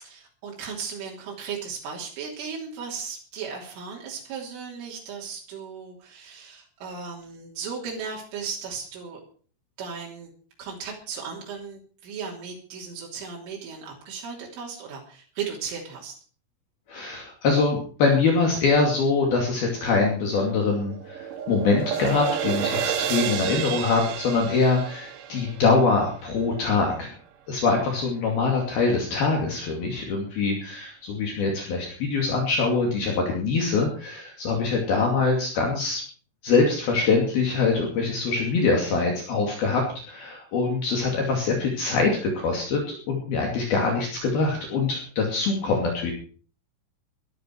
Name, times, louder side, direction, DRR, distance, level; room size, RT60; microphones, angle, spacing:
voice 1, 0.0-9.2 9.8-10.3 10.6-16.1, right 6 dB, 90° right, -3 dB, 5.8 m, -36 dB
voice 2, 16.9-27.1 27.5-36.0 36.4-46.1, left 4 dB, 55° left, 0 dB, 4.2 m, -24 dB
sound 1, 20.3-26.7, right 9 dB, 65° right, 2.3 m, -31 dB
18.5 x 12.5 x 4.7 m, 0.43 s
omnidirectional pair, 5.5 m